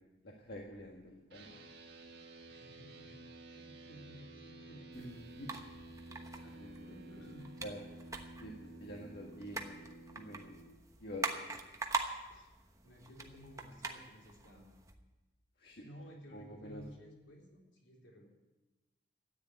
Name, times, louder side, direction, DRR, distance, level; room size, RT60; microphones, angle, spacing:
voice 1, 0.2-1.6 5.0-5.5 6.6-6.9 7.6-7.8 8.4-8.5 8.8-9.8 10.2-10.5 11.0-11.3 15.6-15.8 16.3-16.8, equal, 55° left, -1 dB, 1.6 m, -47 dB
sound 1, 1.3-10.7, right 2 dB, 55° right, 1.7 m, -52 dB
voice 2, 2.5-5.2 6.0-7.5 12.3-12.5 12.8-14.7 15.8-18.3, equal, 75° left, -1 dB, 4.0 m, -55 dB
sound 2, 4.9-14.9, right 3 dB, 15° right, 1.0 m, -44 dB
13.5 x 9.7 x 9.5 m, 1.1 s
head